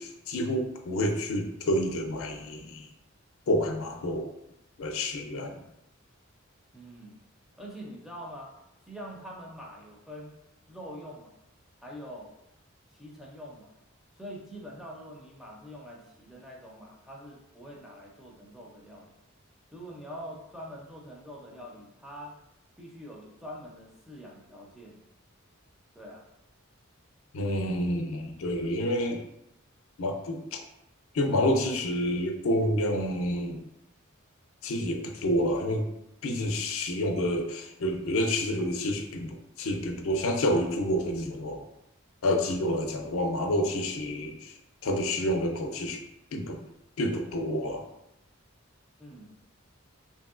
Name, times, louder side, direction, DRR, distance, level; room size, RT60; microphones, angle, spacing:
voice 1, 0.0-2.9 3.5-4.3 4.8-5.5 27.3-29.2 30.0-30.6 31.1-33.6 34.6-35.9 36.2-41.6 42.2-44.5 44.8-46.0 46.3-46.6 47.0-47.8, left 1 dB, 80° left, 3 dB, 0.4 m, -28 dB
voice 2, 6.7-7.2 7.6-8.5 8.9-10.3 10.7-11.4 11.8-12.3 12.9-13.7 14.1-19.1 19.7-22.3 22.8-25.0 25.9-26.2 49.0-49.4, equal, ahead, -3 dB, 0.4 m, -44 dB
2.9 x 2.7 x 2.4 m, 0.84 s
head